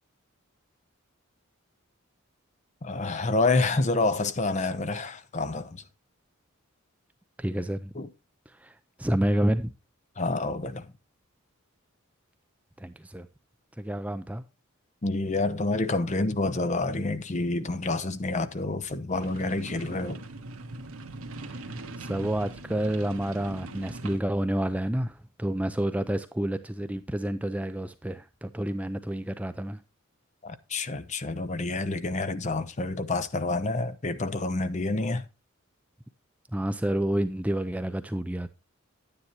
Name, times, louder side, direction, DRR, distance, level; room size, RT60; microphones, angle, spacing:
voice 1, 2.8-5.7 8.0-8.1 10.2-10.8 15.0-20.2 30.4-35.2, left 2 dB, 35° left, 0.7 m, -28 dB
voice 2, 7.4-7.9 8.6-8.7 9.0-9.7 12.8-13.3 13.8-14.4 21.5-29.8 36.5-38.5, right 1 dB, 5° right, 0.4 m, -29 dB
sound 1, 19.1-24.2, right 2 dB, 75° right, 1.2 m, -41 dB
10.0 x 9.7 x 2.9 m
head